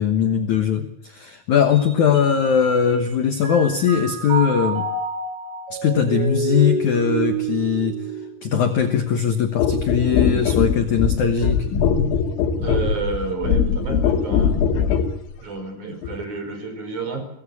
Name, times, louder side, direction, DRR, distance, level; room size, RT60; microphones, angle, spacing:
voice 1, 0.0-4.9 5.7-7.9 8.4-11.7, left 7 dB, 65° left, 7 dB, 1.9 m, -20 dB
Mallet percussion, 1.7-3.1 3.4-8.9, right 5 dB, 80° right, 8.2 m, -28 dB
sound 1, 9.6-15.2 16.0-16.2, left 7 dB, 90° left, 4.4 m, -21 dB
voice 2, 12.6-14.5 15.4-17.2, right 4 dB, 40° right, 6 dB, 6.0 m, -30 dB
24.5 x 19.0 x 8.5 m, 0.80 s
omnidirectional pair, 5.4 m